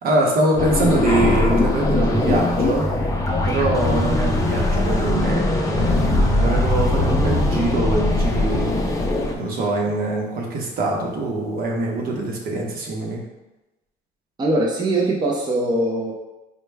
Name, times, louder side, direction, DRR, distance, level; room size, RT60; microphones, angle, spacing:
voice 1, 0.0-2.9 3.5-8.7 9.4-13.2, right 2 dB, 60° right, -1 dB, 0.9 m, -23 dB
sound 1, 0.6-9.3, left 2 dB, 20° left, 0.5 m, -20 dB
sound 2, 1.1-12.8, equal, 40° left, 0.9 m, -36 dB
voice 2, 14.4-16.1, right 1 dB, 25° right, -3 dB, 0.6 m, -21 dB
4.2 x 2.2 x 3.3 m, 1.0 s
cardioid pair, 110°, 17 cm